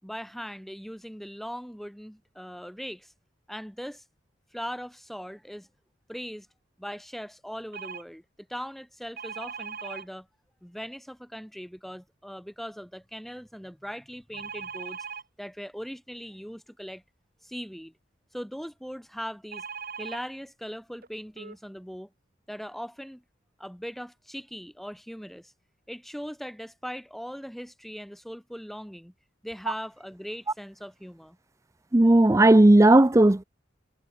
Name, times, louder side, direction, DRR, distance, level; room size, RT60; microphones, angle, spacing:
voice 1, 0.0-3.1 3.5-4.0 4.5-5.7 6.1-6.5 6.8-10.3 10.6-15.0 15.4-17.0 17.4-17.9 18.3-19.7 20.0-22.1 22.5-23.2 23.6-25.5 25.9-29.1 29.4-31.4, equal, ahead, 3.6 m, -40 dB
sound 1, 7.7-8.0 9.2-10.0 14.3-15.2 19.5-20.2 21.0-21.1 21.4-21.6, right 6 dB, 50° right, 2.8 m, -38 dB
voice 2, 31.9-33.4, right 1 dB, 15° right, 0.5 m, -16 dB
head